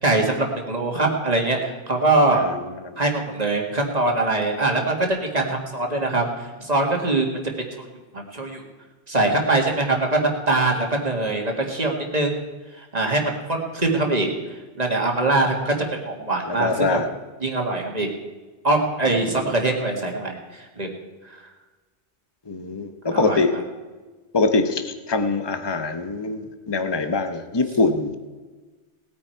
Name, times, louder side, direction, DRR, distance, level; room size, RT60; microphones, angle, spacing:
voice 1, 0.0-2.4 3.0-7.4 8.1-8.6 9.1-12.4 12.8-14.3 14.8-17.0 17.4-18.1 18.6-20.9 23.1-23.4, right 2 dB, 35° right, 1 dB, 2.0 m, -23 dB
voice 2, 2.3-3.0 16.5-17.1 19.4-19.5 22.5-23.5 24.3-28.1, left 3 dB, 25° left, 8 dB, 1.0 m, -24 dB
19.0 x 9.4 x 4.6 m, 1.3 s
omnidirectional pair, 1.1 m